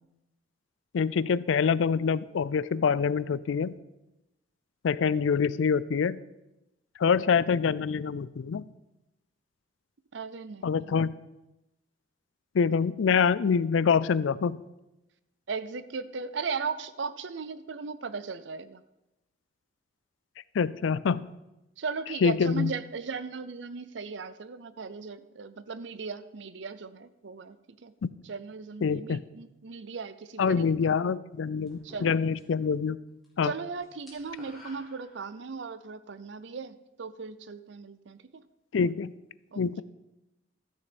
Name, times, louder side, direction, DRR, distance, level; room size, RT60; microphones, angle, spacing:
voice 1, 0.9-3.7 4.8-6.2 7.0-8.6 10.6-11.1 12.5-14.6 20.5-21.2 22.2-22.7 28.0-28.1 28.8-29.2 30.4-33.0 33.4-33.5 38.7-39.1 39.6-39.8, left 6 dB, 80° left, 18 dB, 0.4 m, -25 dB
voice 2, 10.1-11.0 15.5-18.8 21.8-27.9 28.2-31.0 31.8-32.2 33.4-38.4 39.5-39.8, right 5 dB, 70° right, 13 dB, 0.6 m, -37 dB
sound 1, 31.7-32.7 33.0-33.3 33.6-35.6, left 2 dB, ahead, 2.7 m, -52 dB
13.5 x 6.5 x 5.2 m, 0.95 s
head